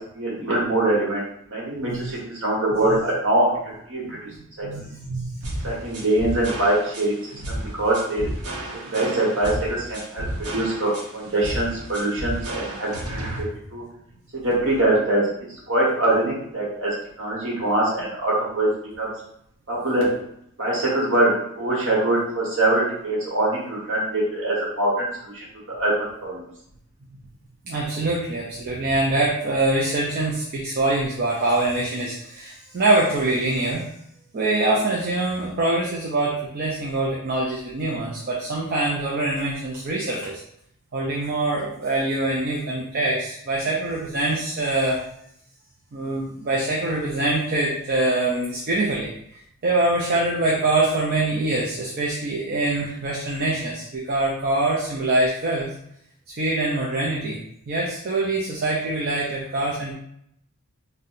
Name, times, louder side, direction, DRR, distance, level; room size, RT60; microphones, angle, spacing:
voice 1, 0.1-4.3 4.6-4.9 5.6-7.2 7.5-8.3 8.9-13.5 13.7-13.8 14.3-15.3 15.7-18.7 19.0-19.1 19.7-20.1 20.6-25.9 26.2-26.5, right 1 dB, 60° right, -5 dB, 1.3 m, -23 dB
voice 2, 4.6-5.7 7.3-7.4 10.3-10.4 27.7-33.8 34.3-40.4 40.9-45.0 45.9-55.7 56.3-57.4 57.7-59.9, right 2 dB, 45° right, -3 dB, 0.5 m, -24 dB
sound 1, 5.4-13.4, right 1 dB, 80° right, 0.8 m, -32 dB
4.1 x 2.2 x 2.6 m, 0.72 s
head